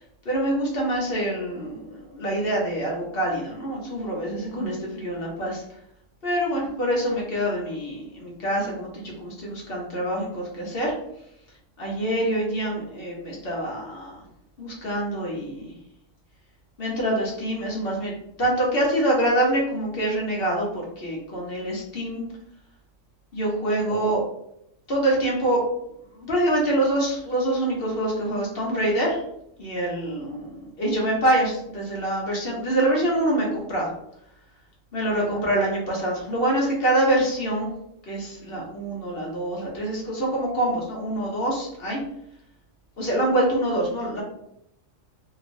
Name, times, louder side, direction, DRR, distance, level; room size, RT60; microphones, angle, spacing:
voice 1, 0.2-5.6 6.2-10.9 11.8-14.2 14.6-15.7 16.8-18.1 18.4-22.2 23.3-24.2 24.9-25.6 26.2-29.2 29.6-33.9 34.9-37.7 38.1-42.0 43.0-44.2, right 1 dB, 50° left, -3 dB, 1.1 m, -25 dB
2.9 x 2.9 x 2.6 m, 0.77 s
omnidirectional pair, 1.3 m